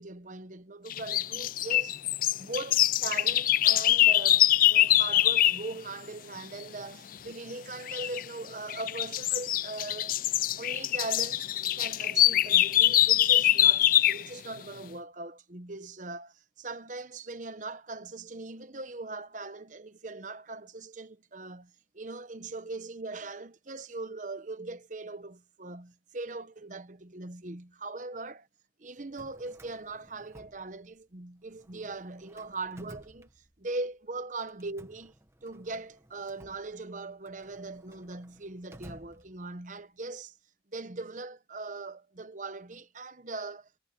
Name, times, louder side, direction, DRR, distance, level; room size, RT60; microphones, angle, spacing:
voice 1, 0.0-10.1 10.5-11.5 11.7-28.5 28.8-33.3 33.6-35.1 35.4-40.3 40.7-43.7, right 3 dB, 40° right, 1.0 m, -40 dB
sound 1, 0.9-5.6 7.9-8.2 8.7-14.3, left 13 dB, 50° left, 0.4 m, -24 dB
Drawer open or close, 29.0-31.2 31.5-33.9 34.5-39.8, right 1 dB, 15° right, 1.3 m, -55 dB
head